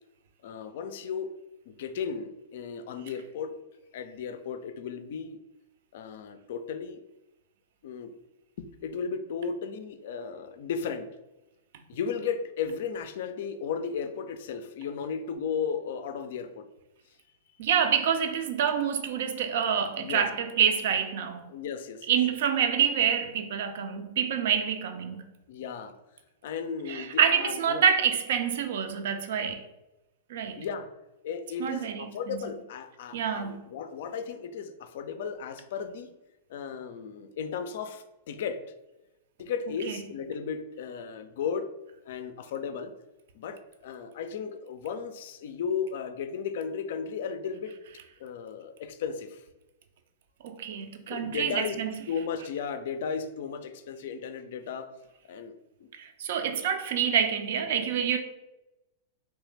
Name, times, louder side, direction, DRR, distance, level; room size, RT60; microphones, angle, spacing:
voice 1, 0.4-1.4 1.7-3.5 3.9-5.4 5.9-7.0 7.8-8.2 8.6-11.1 11.9-16.7 20.0-20.2 21.5-22.2 25.5-25.9 26.4-27.8 30.6-30.9 31.2-36.2 36.5-38.6 39.4-41.7 42.0-42.9 43.3-47.7 48.2-49.4 51.1-51.8 52.1-54.9 55.3-55.5 55.8-55.9, left 6 dB, 60° left, 0.4 m, -35 dB
voice 2, 17.6-21.5 22.1-25.2 26.9-29.6 30.3-30.6 31.6-32.4 33.1-33.6 39.9-40.0 50.4-51.9 56.0-58.2, right 8 dB, 60° right, 0.4 m, -27 dB
3.2 x 3.0 x 3.3 m
figure-of-eight pair, 100°, 0 cm